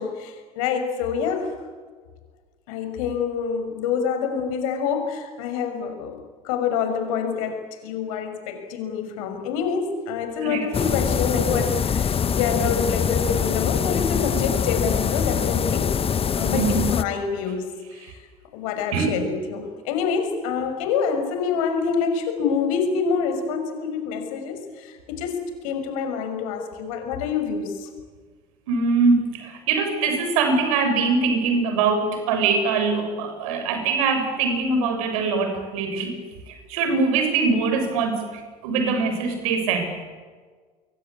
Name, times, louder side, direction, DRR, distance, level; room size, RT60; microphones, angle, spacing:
voice 1, 0.0-1.5 2.7-6.2 6.4-15.9 16.3-18.2 18.5-27.9, left 6 dB, 75° left, 6 dB, 6.0 m, -26 dB
sound 1, 10.7-17.0, left 7 dB, 30° left, 1.4 m, -23 dB
voice 2, 16.5-16.9 18.0-18.1 18.9-19.2 28.7-36.2 36.5-38.2 38.6-39.9, right 4 dB, 75° right, 6 dB, 7.0 m, -22 dB
28.5 x 23.0 x 8.5 m, 1.5 s
hypercardioid pair, 70°, 18 cm